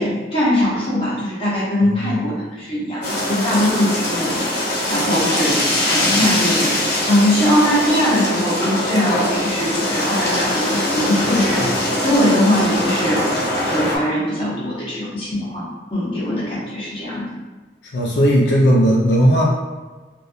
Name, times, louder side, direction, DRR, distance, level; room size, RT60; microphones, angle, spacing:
voice 1, 0.0-13.3 13.6-17.3, left 1 dB, 30° left, -8 dB, 1.1 m, -21 dB
voice 2, 1.8-2.1 11.6-11.7 17.9-19.4, equal, 75° left, -3 dB, 0.5 m, -16 dB
sound 1, 3.0-14.0, left 1 dB, 60° left, 1.0 m, -22 dB
3.3 x 2.6 x 2.7 m, 1.3 s
head